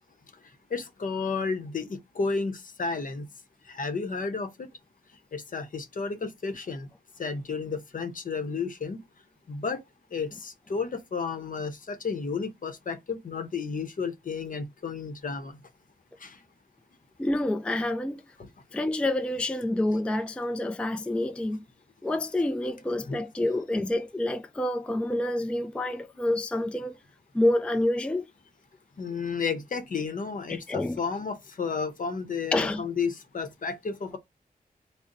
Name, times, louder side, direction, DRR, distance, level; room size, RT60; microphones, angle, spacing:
voice 1, 0.7-3.3 3.7-4.7 5.3-6.9 7.2-9.0 9.5-9.8 10.1-15.6 16.2-16.4 18.4-18.5 23.0-23.2 29.0-34.2, left 5 dB, 60° left, 0.7 m, -32 dB
voice 2, 17.2-18.2 18.7-21.6 22.0-27.0 27.3-28.3 30.5-31.0 32.5-32.8, left 1 dB, 5° left, 0.3 m, -28 dB
3.9 x 2.0 x 3.7 m
wide cardioid pair, 85°, 16 cm